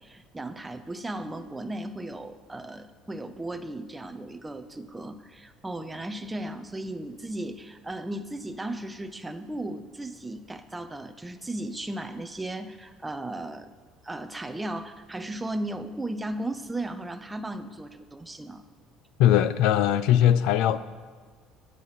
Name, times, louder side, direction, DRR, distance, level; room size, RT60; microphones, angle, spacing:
voice 1, 0.0-13.7 14.0-18.6, right 1 dB, 10° right, 0.6 m, -36 dB
voice 2, 19.2-20.8, left 11 dB, 75° left, 0.6 m, -20 dB
21.5 x 7.8 x 4.1 m
cardioid pair, 170°, 0 cm